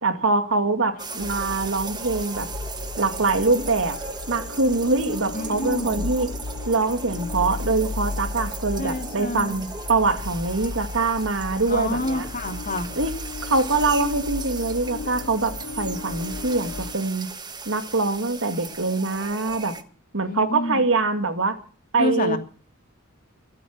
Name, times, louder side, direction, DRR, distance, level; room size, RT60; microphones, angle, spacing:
voice 1, 0.0-2.5 3.0-4.0 4.3-6.3 6.7-12.3 13.0-13.1 13.4-17.3 17.7-19.8 20.1-21.6 21.9-22.4, right 3 dB, 65° right, 8 dB, 2.2 m, -24 dB
sound 1, 1.0-19.8, right 4 dB, 20° right, 1.5 m, -37 dB
sound 2, 1.2-16.9, left 3 dB, 80° left, 0.7 m, -35 dB
voice 2, 5.3-6.1 8.8-9.5 11.7-12.9 20.2-20.8 22.0-22.4, left 1 dB, 40° left, 5 dB, 2.7 m, -28 dB
23.5 x 8.5 x 6.2 m, 0.40 s
head